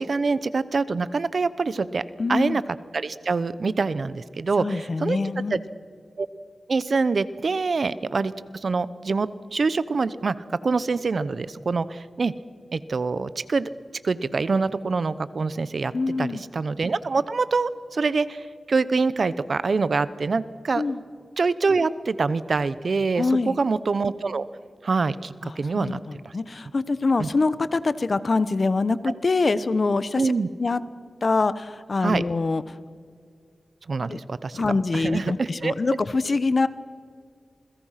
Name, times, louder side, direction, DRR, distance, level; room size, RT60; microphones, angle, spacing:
voice 1, 0.0-2.0 2.3-2.6 2.9-5.2 5.5-5.6 6.2-6.3 6.7-8.3 8.6-10.3 10.6-12.3 12.7-13.7 14.0-15.9 16.2-20.8 21.4-24.4 24.8-26.0 26.2-26.3 27.2-27.3 30.2-30.5 32.0-32.2 33.9-34.6 34.9-35.7, right 4 dB, 65° right, 16 dB, 0.9 m, -25 dB
voice 2, 2.2-2.6 4.6-5.6 15.9-16.4 20.7-21.0 23.2-23.6 25.4-30.3 30.6-30.8 31.2-32.6 34.1-34.2 34.5-36.7, left 3 dB, 50° left, 15 dB, 0.9 m, -24 dB
28.0 x 21.5 x 5.8 m, 2.1 s
wide cardioid pair, 85°, 0 cm